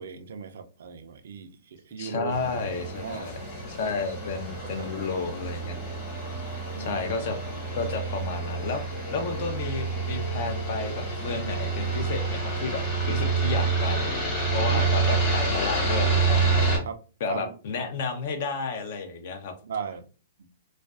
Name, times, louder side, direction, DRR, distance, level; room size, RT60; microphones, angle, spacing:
voice 1, 0.0-3.3 3.9-4.0 4.6-5.0 6.7-7.0 14.5-15.5 16.9-17.0 17.3-17.5 19.6-20.1 20.4-20.5, right 6 dB, 70° right, 9 dB, 0.4 m, -38 dB
voice 2, 2.0-3.4 3.7-5.8 6.8-7.4 7.7-16.6 17.2-19.5, left 4 dB, 55° left, 6 dB, 0.6 m, -32 dB
sound 1, 2.3-16.8, right 3 dB, 25° left, 1.2 m, -28 dB
2.4 x 2.2 x 2.3 m, 0.36 s
hypercardioid pair, 130°, 0 cm